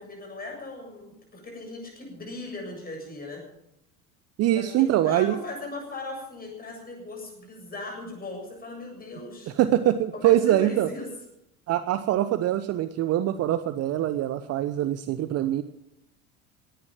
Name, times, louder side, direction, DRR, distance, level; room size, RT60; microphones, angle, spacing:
voice 1, 0.0-3.4 4.5-9.5 10.1-11.1, left 2 dB, 20° left, 1 dB, 7.7 m, -38 dB
voice 2, 4.4-5.3 9.5-10.9 11.7-15.6, right 12 dB, 35° right, 12 dB, 0.8 m, -23 dB
18.5 x 10.5 x 7.4 m, 0.84 s
figure-of-eight pair, 70°, 43 cm